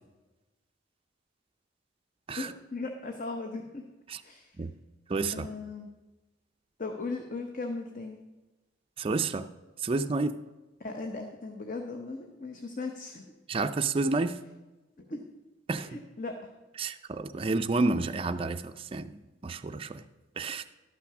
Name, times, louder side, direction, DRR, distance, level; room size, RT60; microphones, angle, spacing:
voice 1, 2.3-3.8 4.2-4.6 5.3-5.9 6.8-8.2 10.8-13.3 15.0-15.3 15.8-16.5, left 3 dB, 45° left, 4 dB, 0.8 m, -38 dB
voice 2, 5.1-5.5 9.0-9.5 9.8-10.3 13.5-14.4 15.7-16.0 16.8-20.0 20.4-20.6, right 3 dB, 30° right, 8 dB, 0.4 m, -30 dB
12.0 x 5.9 x 5.9 m, 1.1 s
head